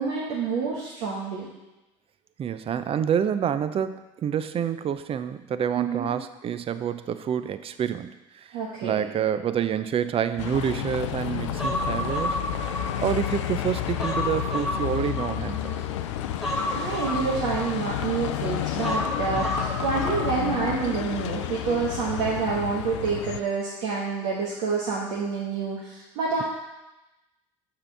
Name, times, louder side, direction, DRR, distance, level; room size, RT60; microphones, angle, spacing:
voice 1, 0.0-1.5 5.8-6.1 8.5-9.0 16.7-26.4, right 5 dB, 75° right, -5 dB, 1.2 m, -28 dB
voice 2, 2.4-8.6 8.8-12.4 13.0-15.8 19.4-19.6, right 8 dB, 40° right, 12 dB, 0.5 m, -28 dB
Bus, 10.4-23.4, left 11 dB, 85° left, 0.4 m, -31 dB
Human voice, 11.6-13.4 13.8-15.8 16.4-18.2 18.8-20.8 21.0-21.2, left 1 dB, ahead, 1.4 m, -31 dB
6.6 x 3.8 x 6.0 m, 1.0 s
hypercardioid pair, 65°, 15 cm